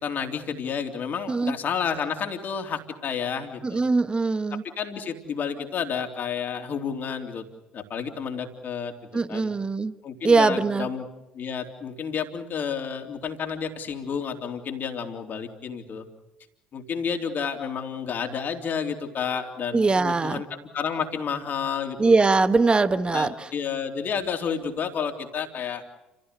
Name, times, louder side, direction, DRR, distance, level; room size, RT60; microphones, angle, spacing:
voice 1, 0.0-3.8 4.8-7.5 7.7-8.9 9.3-9.5 10.0-11.0 11.3-16.1 16.7-22.2 23.1-25.8, left 7 dB, 50° left, 4 dB, 3.5 m, -30 dB
voice 2, 3.6-4.6 9.1-9.9 10.2-10.9 19.7-20.4 22.0-23.5, right 3 dB, 25° right, 12 dB, 1.3 m, -21 dB
29.5 x 16.5 x 8.4 m, 0.98 s
hypercardioid pair, 55°, 4 cm